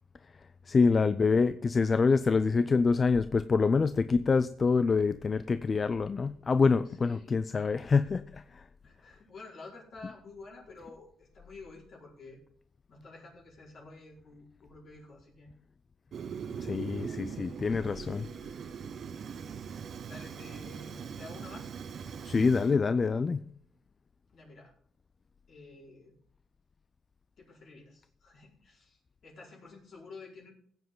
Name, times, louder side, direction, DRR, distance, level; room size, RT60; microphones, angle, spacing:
voice 1, 0.7-8.4 16.6-18.2 22.2-23.4, left 4 dB, 35° left, 13 dB, 0.4 m, -26 dB
voice 2, 6.8-7.3 8.8-12.4 12.9-15.5 17.1-17.4 17.7-17.9 20.0-21.7 24.3-24.7 25.5-26.1 27.4-30.5, left 3 dB, 60° left, -4 dB, 4.8 m, -50 dB
Fire, 16.1-22.7, right 7 dB, 60° right, 0.9 m, -41 dB
17.0 x 7.9 x 3.9 m, 0.64 s
cardioid pair, 90°, 0 cm